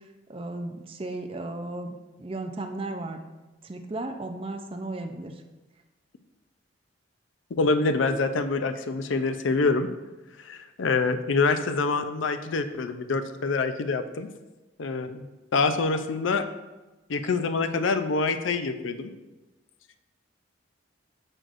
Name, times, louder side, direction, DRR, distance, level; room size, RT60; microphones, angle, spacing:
voice 1, 0.3-3.2 3.6-5.3, right 2 dB, 30° right, 5 dB, 0.5 m, -35 dB
voice 2, 7.5-9.9 10.4-14.3 14.8-16.5 17.1-19.1, left 4 dB, 90° left, 9 dB, 0.5 m, -26 dB
8.8 x 6.4 x 2.6 m, 1.1 s
head